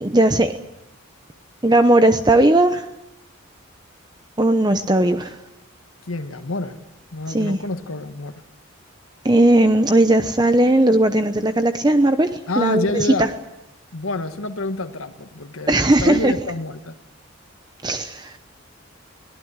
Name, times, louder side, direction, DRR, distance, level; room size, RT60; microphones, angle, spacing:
voice 1, 0.0-0.5 1.6-2.9 4.4-5.4 7.3-7.6 9.2-13.3 15.7-16.3 17.8-18.4, right 1 dB, 20° right, 9 dB, 0.8 m, -17 dB
voice 2, 6.1-6.8 7.1-8.3 12.5-13.3 13.9-15.7 16.0-16.9, left 2 dB, 85° left, 7 dB, 1.5 m, -27 dB
23.5 x 18.0 x 9.7 m, 0.90 s
head